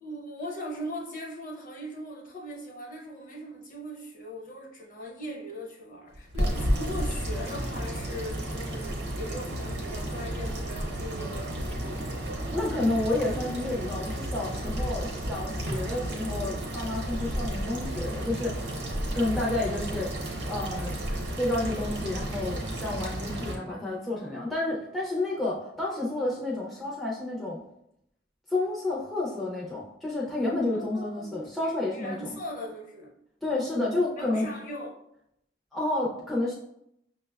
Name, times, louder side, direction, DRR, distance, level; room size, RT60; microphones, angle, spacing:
voice 1, 0.0-12.2 30.7-33.1 34.2-34.9, equal, 45° left, -1 dB, 0.8 m, -39 dB
sound 1, 6.1-23.5, right 1 dB, 65° right, 0.8 m, -32 dB
voice 2, 12.5-18.7 19.1-21.0 21.4-27.6 28.5-32.4 33.4-34.5 35.7-36.6, left 2 dB, ahead, -4 dB, 0.4 m, -30 dB
5.8 x 2.1 x 2.2 m, 0.77 s
head